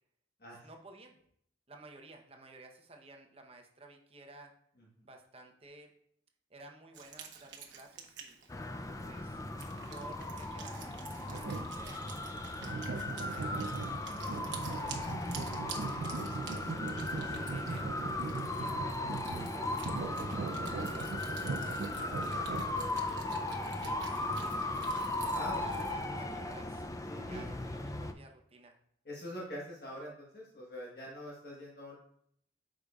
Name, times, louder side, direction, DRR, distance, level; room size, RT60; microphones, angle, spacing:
voice 1, 0.6-1.2 1.7-4.5 5.0-5.9 6.5-8.4 9.0-9.4 9.9-12.2 12.6-13.8 14.2-16.6 17.1-18.0 18.5-21.2 21.6-23.5 24.0-24.7 25.5-26.9 27.3-28.8, right 2 dB, 35° right, 3 dB, 0.8 m, -54 dB
Wind instrument woodwind instrument, 6.9-25.9, right 7 dB, 90° right, 0.9 m, -51 dB
sound 1, 8.5-28.1, left 2 dB, 20° left, 0.4 m, -37 dB
sound 2, 11.3-12.0 12.6-22.7, right 4 dB, 65° right, 0.4 m, -40 dB
voice 2, 24.1-24.4 25.3-25.6 27.1-27.4 29.0-32.0, equal, 55° left, -4 dB, 1.2 m, -44 dB
8.9 x 5.0 x 2.4 m, 0.68 s
head